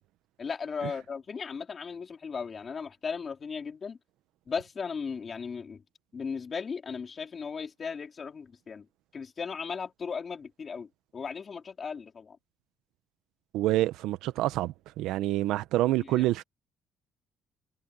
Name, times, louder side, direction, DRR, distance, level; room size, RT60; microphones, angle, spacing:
voice 1, 0.4-4.0 4.5-5.8 6.1-8.9 9.1-12.4 16.0-16.2, left 5 dB, 30° left, 4.1 m, -36 dB
voice 2, 13.5-16.4, right 15 dB, 90° right, 0.8 m, -27 dB
cardioid pair, 155°, 0 cm